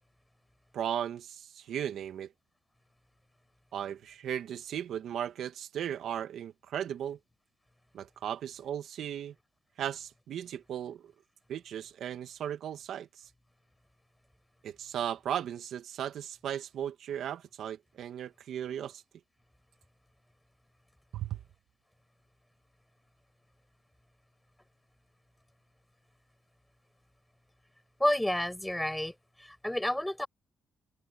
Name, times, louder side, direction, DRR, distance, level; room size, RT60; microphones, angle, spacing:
voice 1, 0.7-2.3 3.7-7.2 7.9-9.3 9.8-11.0 11.5-13.3 14.6-19.0 21.1-21.4, right 10 dB, 70° right, 1.9 m, -36 dB
voice 2, 28.0-30.3, left 1 dB, 5° left, 5.9 m, -30 dB
cardioid pair, 90°, 0 cm